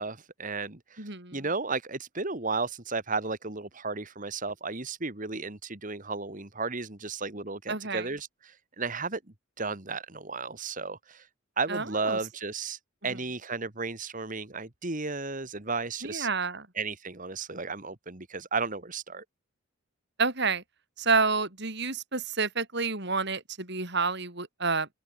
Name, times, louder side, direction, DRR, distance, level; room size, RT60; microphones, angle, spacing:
voice 1, 0.0-9.2 9.6-11.3 11.6-16.3 16.8-19.2, right 4 dB, 40° right, 2.1 m, -34 dB
voice 2, 1.0-1.5 7.7-8.1 11.7-12.2 16.0-16.7 20.2-20.6 21.0-24.9, right 4 dB, 55° right, 5.7 m, -29 dB
open air
head